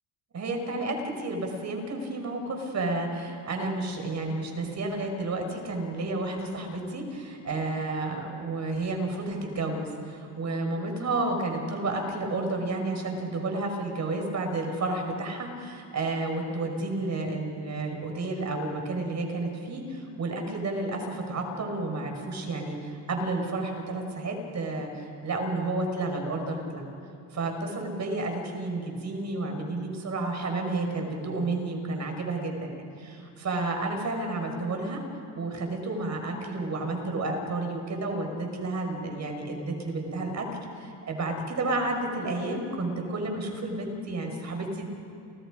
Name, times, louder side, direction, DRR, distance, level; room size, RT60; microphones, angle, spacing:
voice 1, 0.3-26.9 27.3-35.0 35.3-40.5 40.8-44.8, right 2 dB, 35° right, 4 dB, 5.7 m, -31 dB
30.0 x 29.5 x 5.2 m, 2.8 s
supercardioid pair, 110°, 47 cm